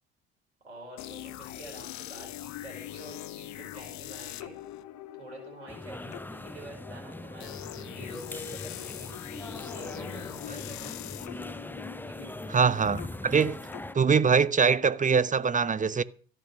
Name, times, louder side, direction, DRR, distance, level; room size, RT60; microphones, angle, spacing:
voice 1, 0.6-4.6 5.2-9.2 9.7-11.0 12.1-12.4, right 2 dB, 90° right, 5.4 m, -48 dB
sound 1, 1.0-14.7, left 13 dB, 55° left, 1.1 m, -43 dB
sound 2, 5.7-13.9, left 1 dB, 5° left, 0.9 m, -41 dB
voice 2, 12.5-13.6 13.9-16.0, right 5 dB, 25° right, 1.1 m, -23 dB
14.0 x 11.0 x 6.2 m
hypercardioid pair, 60°, 33 cm